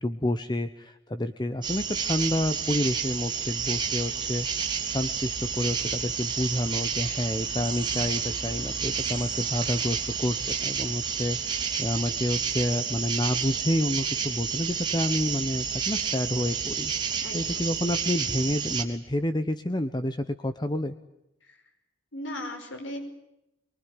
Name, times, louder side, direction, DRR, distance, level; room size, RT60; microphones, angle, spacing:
voice 1, 0.0-16.9 17.3-20.9, left 1 dB, 20° left, 10 dB, 1.0 m, -29 dB
sound 1, 1.6-18.8, right 6 dB, 25° right, 3.4 m, -30 dB
voice 2, 17.2-17.7 21.4-21.6 22.1-23.0, left 1 dB, 75° left, 4 dB, 5.3 m, -37 dB
24.0 x 23.5 x 10.0 m, 0.89 s
head